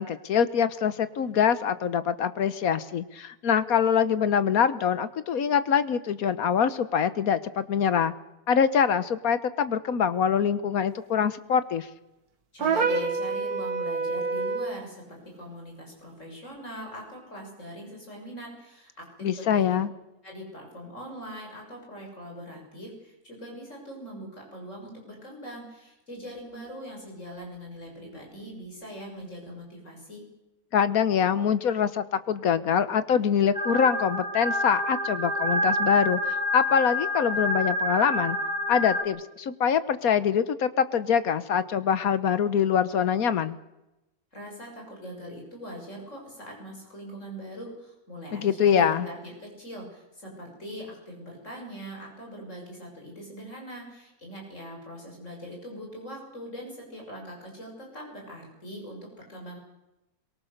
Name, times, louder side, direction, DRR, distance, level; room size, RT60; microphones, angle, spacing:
voice 1, 0.0-8.1 8.5-11.9 19.2-19.9 30.7-38.4 38.7-43.6 48.3-49.1, left 7 dB, 65° left, 13 dB, 1.4 m, -24 dB
voice 2, 12.5-19.8 20.2-30.2 44.3-59.6, equal, 50° left, 0 dB, 7.0 m, -41 dB
sound 1, 12.6-14.8, right 4 dB, 75° right, 2.1 m, -27 dB
sound 2, 33.5-39.0, left 1 dB, 25° right, 2.2 m, -28 dB
22.5 x 22.5 x 6.6 m, 0.95 s
omnidirectional pair, 1.7 m